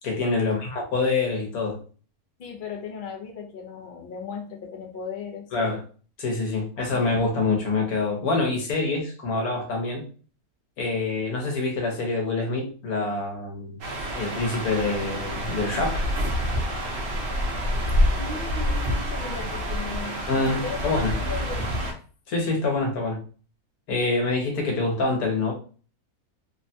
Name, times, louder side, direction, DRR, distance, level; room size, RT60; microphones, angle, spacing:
voice 1, 0.0-1.8 5.5-5.8 6.2-10.0 10.8-13.8 14.1-16.0 20.3-21.1 22.3-23.2 23.9-25.5, left 3 dB, 80° left, 1.4 m, -26 dB
voice 2, 2.4-5.5 18.2-20.2 20.6-20.8 21.2-21.7, left 5 dB, 50° left, 0.6 m, -36 dB
sound 1, 13.8-21.9, equal, 50° right, 0.7 m, -27 dB
3.2 x 2.2 x 2.6 m
omnidirectional pair, 1.6 m